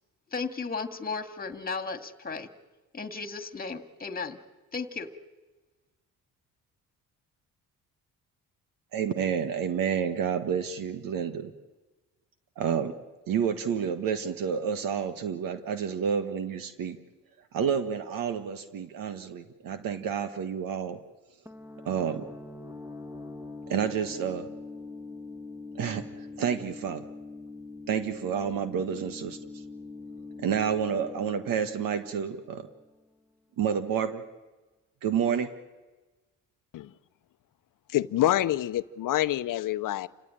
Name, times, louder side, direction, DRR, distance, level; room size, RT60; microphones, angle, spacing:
voice 1, 0.3-2.5 2.9-4.4 4.7-5.1, left 4 dB, 25° left, 8 dB, 2.1 m, -35 dB
voice 2, 8.9-11.5 12.6-12.9 13.3-17.0 17.5-21.0 21.8-22.2 23.7-24.5 25.8-26.0 26.4-27.0 27.9-29.4 30.4-32.7 33.6-34.2 35.0-35.5, right 7 dB, 70° right, 9 dB, 1.6 m, -29 dB
sound 1, 21.5-33.0, left 3 dB, 10° right, 2.0 m, -43 dB
voice 3, 37.9-40.1, left 14 dB, 65° left, 14 dB, 0.8 m, -26 dB
28.5 x 16.5 x 8.9 m, 1.2 s
cardioid pair, 80°, 34 cm